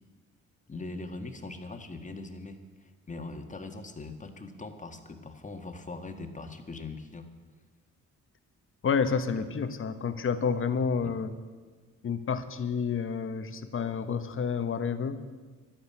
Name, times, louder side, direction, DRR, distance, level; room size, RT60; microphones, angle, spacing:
voice 1, 0.7-7.3 11.0-11.2, left 3 dB, 25° left, 5 dB, 1.7 m, -41 dB
voice 2, 8.8-11.3 12.0-15.2, left 6 dB, 45° left, 10 dB, 1.2 m, -29 dB
12.0 x 11.5 x 8.6 m, 1.4 s
cardioid pair, 90°, 30 cm